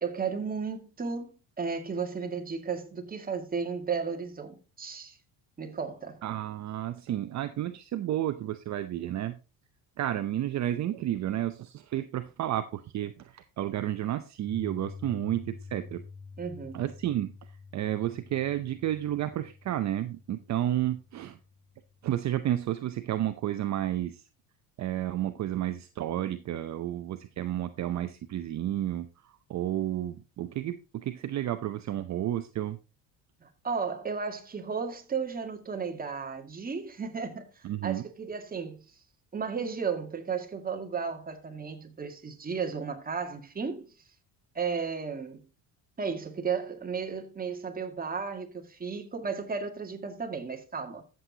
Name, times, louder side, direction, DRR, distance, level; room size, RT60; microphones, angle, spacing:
voice 1, 0.0-5.2 5.6-6.2 16.4-16.8 33.4-38.8 39.3-43.9 44.6-45.5 46.0-51.0, right 5 dB, 25° right, 2.0 m, -34 dB
voice 2, 6.2-9.4 10.0-16.0 16.7-17.3 17.7-21.4 22.0-24.2 24.8-32.8 37.6-38.0, right 12 dB, 45° right, 0.7 m, -31 dB
Piano, 14.5-22.6, left 4 dB, 20° left, 6.1 m, -48 dB
13.5 x 7.8 x 2.8 m
cardioid pair, 110°, 38 cm